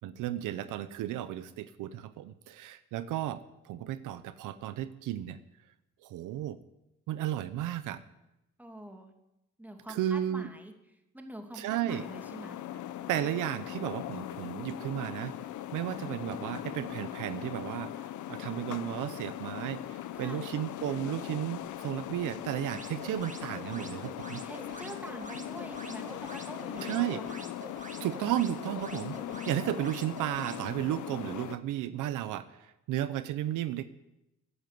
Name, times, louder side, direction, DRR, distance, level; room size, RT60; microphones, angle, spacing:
voice 1, 0.0-5.4 6.0-6.6 7.1-8.0 9.9-10.5 11.5-12.0 13.1-15.4 15.7-24.4 26.8-27.2 28.0-29.2 29.5-33.8, right 12 dB, 90° right, 13 dB, 0.8 m, -34 dB
voice 2, 8.6-9.1 9.6-10.7 11.1-12.6 20.1-20.4 24.4-27.6, right 1 dB, 5° right, 3 dB, 2.7 m, -45 dB
sound 1, 11.9-31.6, left 12 dB, 75° left, 0.9 m, -40 dB
sound 2, 22.4-30.6, right 3 dB, 25° right, 1.8 m, -47 dB
15.0 x 9.9 x 9.4 m, 0.91 s
cardioid pair, 90°, 30 cm